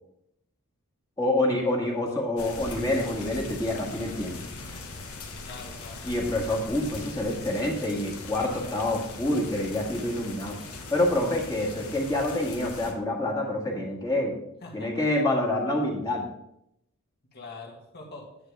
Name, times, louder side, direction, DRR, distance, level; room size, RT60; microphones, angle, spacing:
voice 1, 1.2-4.4 6.0-10.6 10.9-14.4 14.7-16.3, left 1 dB, 15° left, -1 dB, 1.7 m, -27 dB
sound 1, 2.4-12.9, left 3 dB, 85° left, 1.4 m, -40 dB
voice 2, 5.4-6.1 14.6-15.0 17.3-18.3, left 3 dB, 45° left, -1 dB, 2.2 m, -43 dB
9.7 x 9.6 x 3.4 m, 0.78 s
head